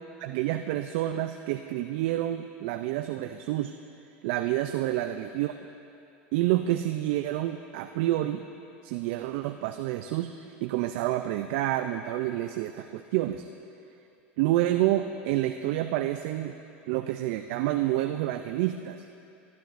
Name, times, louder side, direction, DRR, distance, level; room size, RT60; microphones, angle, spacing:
voice 1, 0.2-3.8 4.2-5.5 6.3-8.4 8.8-10.3 10.6-13.5 14.4-16.6 16.9-19.0, right 14 dB, 65° right, 8 dB, 0.4 m, -28 dB
18.0 x 12.0 x 2.6 m, 2.7 s
hypercardioid pair, 110°, 7 cm